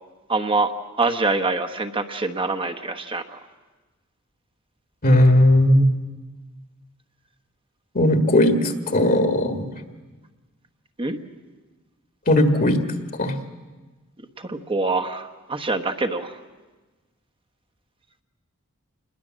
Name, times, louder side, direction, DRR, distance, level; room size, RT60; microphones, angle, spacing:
voice 1, 0.3-0.7 1.0-3.4 11.0-11.2 14.4-16.4, right 3 dB, 25° right, 6 dB, 1.2 m, -25 dB
voice 2, 5.0-5.9 7.9-9.7 12.3-12.8 13.2-13.4, left 1 dB, 40° left, 7 dB, 1.7 m, -17 dB
27.5 x 20.5 x 7.6 m, 1.2 s
head